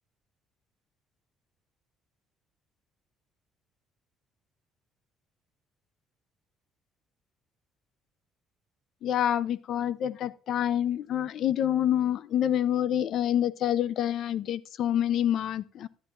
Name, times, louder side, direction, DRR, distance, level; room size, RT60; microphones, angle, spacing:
voice 1, 9.0-15.9, left 10 dB, 60° left, 0.6 m, -27 dB
12.0 x 10.5 x 2.6 m
cardioid pair, 110°, 0 cm